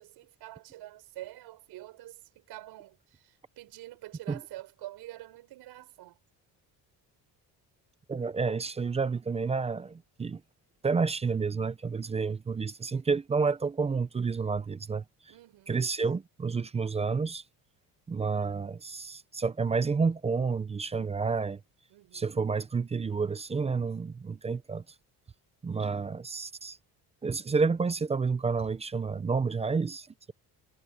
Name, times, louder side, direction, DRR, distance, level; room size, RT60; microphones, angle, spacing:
voice 1, 0.0-6.2 15.3-15.9 21.9-22.5, right 15 dB, 85° right, 6.8 m, -47 dB
voice 2, 8.1-10.4 10.8-15.0 15.7-17.4 18.1-21.6 22.1-24.8 25.6-26.8 27.2-30.3, right 4 dB, 15° right, 0.5 m, -30 dB
cardioid pair, 160°, 38 cm